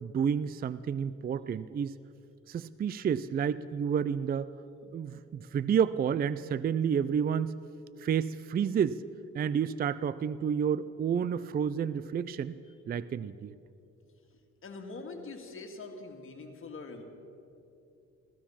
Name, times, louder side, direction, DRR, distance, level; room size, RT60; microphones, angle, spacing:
voice 1, 0.0-2.0 2.5-4.5 4.9-7.5 8.0-9.0 9.3-12.5 12.9-13.5, right 7 dB, 30° right, 16 dB, 0.4 m, -30 dB
voice 2, 14.6-17.0, left 3 dB, 45° left, 3 dB, 2.1 m, -43 dB
15.5 x 15.0 x 5.8 m, 2.7 s
cardioid pair, 90°, 30 cm